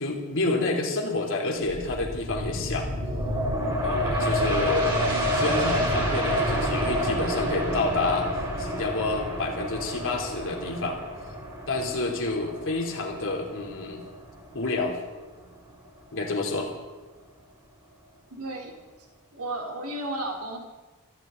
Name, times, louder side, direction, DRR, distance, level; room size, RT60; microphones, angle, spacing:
voice 1, 0.0-2.9 3.8-5.0 5.3-8.3 8.6-11.0 11.7-14.0 14.5-15.0 16.1-16.7, left 2 dB, 60° left, 1 dB, 3.1 m, -29 dB
sound 1, 1.6-14.9 15.3-15.4, equal, 25° right, 6.0 m, -28 dB
voice 2, 18.3-18.7 19.3-20.7, right 1 dB, 70° right, 0 dB, 3.5 m, -33 dB
23.5 x 14.5 x 3.9 m, 1.2 s
head